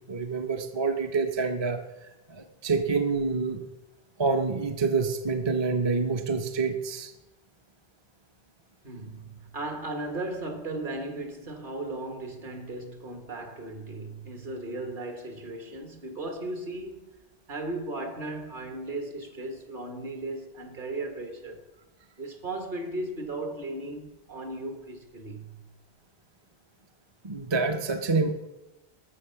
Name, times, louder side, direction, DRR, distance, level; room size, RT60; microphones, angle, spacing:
voice 1, 0.1-3.6 4.2-7.1 27.2-28.3, right 4 dB, 30° right, 0.6 m, -27 dB
voice 2, 8.8-17.1 17.5-21.6 22.2-25.6, right 2 dB, 55° right, 1.7 m, -36 dB
13.0 x 6.6 x 5.7 m
omnidirectional pair, 1.1 m